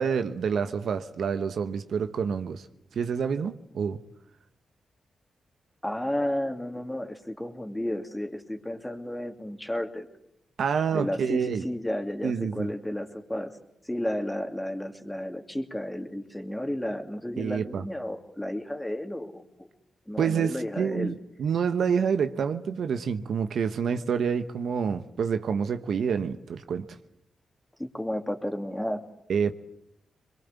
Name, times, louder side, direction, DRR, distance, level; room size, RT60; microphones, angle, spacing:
voice 1, 0.0-2.7 2.9-4.0 10.6-11.7 12.2-12.7 17.4-17.8 20.2-26.9 29.3-29.5, right 6 dB, 75° right, 1.1 m, -28 dB
voice 2, 5.8-10.1 10.9-13.5 13.8-19.7 20.1-21.1 27.8-29.0, left 1 dB, 10° left, 2.7 m, -32 dB
22.5 x 22.0 x 8.3 m
cardioid pair, 55°, 0 cm